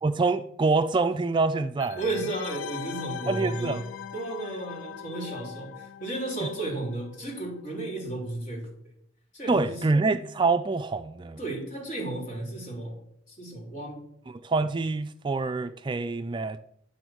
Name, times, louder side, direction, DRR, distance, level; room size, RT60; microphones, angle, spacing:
voice 1, 0.0-2.0 3.3-3.8 9.5-11.4 14.4-16.6, right 3 dB, 25° right, 0.3 m, -26 dB
sound 1, 1.8-7.3 7.5-7.6, left 9 dB, 85° left, 0.6 m, -40 dB
voice 2, 1.9-3.8 4.1-8.7 9.3-9.8 11.4-13.0 13.3-14.0, right 2 dB, 45° left, 4.1 m, -33 dB
10.5 x 7.0 x 6.2 m
head